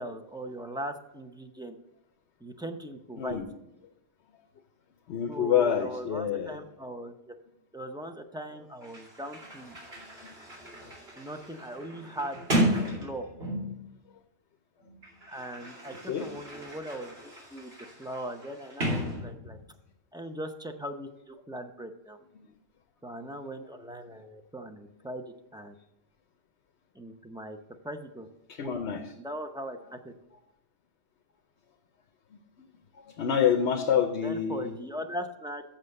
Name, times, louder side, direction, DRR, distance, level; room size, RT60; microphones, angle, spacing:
voice 1, 0.0-1.8 2.4-3.4 5.3-7.3 7.7-9.8 11.2-12.4 13.0-13.3 15.3-17.7 18.0-19.6 20.1-22.2 23.0-25.2 25.5-25.8 26.9-27.6 27.8-28.3 28.6-28.7 29.2-30.1 34.2-35.6, right 1 dB, 5° right, 5 dB, 0.4 m, -39 dB
voice 2, 3.2-3.5 4.3-4.4 5.1-6.6 10.0-10.3 10.8-10.9 15.9-16.3 28.5-29.1 32.6-32.7 32.9-34.8, left 8 dB, 70° left, 4 dB, 1.0 m, -28 dB
Sliding door, 8.5-8.6 8.8-13.9 14.8-19.8, right 1 dB, 60° right, 2.9 m, -34 dB
7.7 x 6.7 x 6.5 m, 0.87 s
omnidirectional pair, 1.2 m